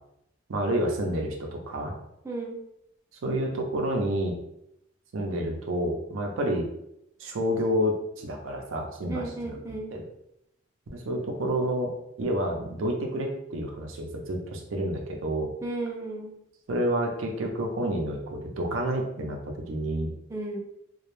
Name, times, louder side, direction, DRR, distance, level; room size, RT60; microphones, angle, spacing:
voice 1, 0.5-2.0 3.2-4.4 5.1-6.7 7.2-10.0 10.9-11.9 12.2-15.5 16.7-20.1, right 1 dB, 80° right, 2 dB, 0.5 m, -29 dB
voice 2, 2.2-2.6 9.1-9.9 15.6-16.3 20.3-20.6, right 2 dB, 15° right, -2 dB, 0.3 m, -34 dB
2.2 x 2.0 x 3.0 m, 0.80 s
head